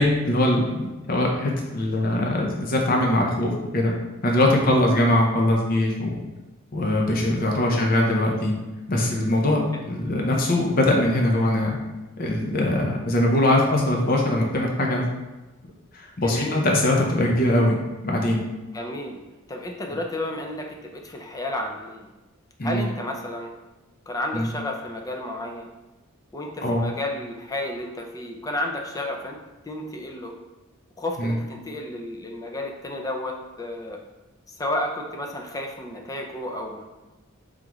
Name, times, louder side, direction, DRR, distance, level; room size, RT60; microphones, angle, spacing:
voice 1, 0.0-3.9 4.2-6.2 6.7-8.5 8.9-11.8 12.2-15.0 15.9-17.8 18.0-18.4 22.6-22.9 24.3-24.5 26.6-26.8 31.2-31.4, left 1 dB, 45° left, 0 dB, 0.7 m, -22 dB
voice 2, 16.2-16.6 18.7-19.2 19.5-22.1 22.6-23.5 24.1-25.7 26.3-29.4 29.7-30.4 31.0-34.0 34.5-36.8, left 1 dB, 15° left, 2 dB, 0.4 m, -32 dB
3.7 x 3.5 x 3.0 m, 1.1 s
head